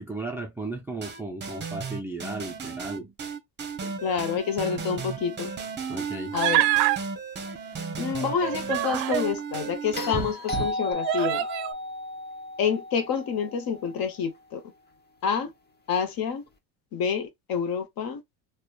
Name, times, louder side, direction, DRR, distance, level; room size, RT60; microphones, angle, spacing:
voice 1, 0.0-3.1 3.8-4.0 5.9-6.4, right 2 dB, 5° right, 0.3 m, -35 dB
sound 1, 1.0-10.9, right 5 dB, 25° right, 0.7 m, -34 dB
voice 2, 4.0-5.5 6.3-6.7 8.0-11.4 12.6-14.6 15.2-15.5 15.9-16.4 16.9-18.2, left 7 dB, 50° left, 0.9 m, -28 dB
Human voice, 6.3-7.0 8.2-9.3 10.1-10.2 11.0-11.7, right 16 dB, 75° right, 0.5 m, -25 dB
sound 2, 10.0-14.2 16.5-16.6, left 2 dB, 20° left, 0.7 m, -34 dB
2.9 x 2.2 x 2.3 m
supercardioid pair, 90°, 46 cm